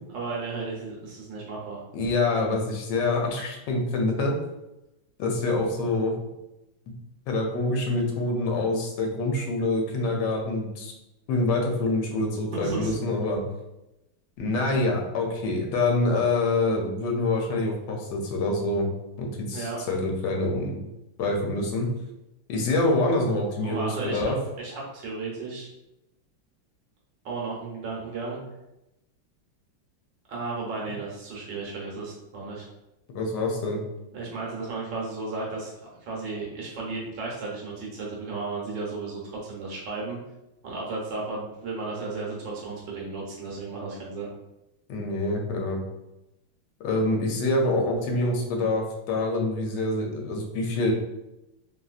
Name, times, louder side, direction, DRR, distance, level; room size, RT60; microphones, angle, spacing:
voice 1, 0.1-1.8 12.6-12.9 19.5-19.8 23.6-25.7 27.2-28.4 30.3-32.7 34.1-35.7 36.0-40.2 40.6-44.3, right 3 dB, 70° right, -3 dB, 1.3 m, -34 dB
voice 2, 1.9-4.3 5.2-6.1 7.3-10.9 11.3-13.4 14.4-18.9 19.2-20.8 21.2-21.9 22.5-24.4 33.1-33.8 44.9-45.8 46.8-50.9, left 2 dB, 70° left, 1 dB, 1.1 m, -26 dB
3.1 x 2.5 x 2.4 m, 0.93 s
omnidirectional pair, 2.2 m